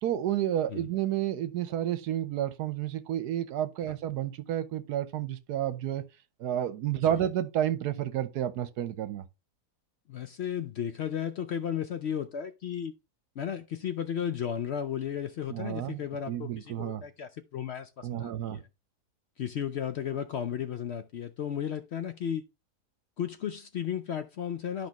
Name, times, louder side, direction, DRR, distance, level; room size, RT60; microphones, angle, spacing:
voice 1, 0.0-6.0 6.4-9.2 15.5-16.0 16.3-17.0 18.0-18.6, right 11 dB, 75° right, 1.3 m, -30 dB
voice 2, 10.1-12.9 13.4-18.7 19.4-22.4 23.2-24.9, left 9 dB, 75° left, 0.6 m, -34 dB
10.5 x 5.1 x 2.9 m
omnidirectional pair, 1.7 m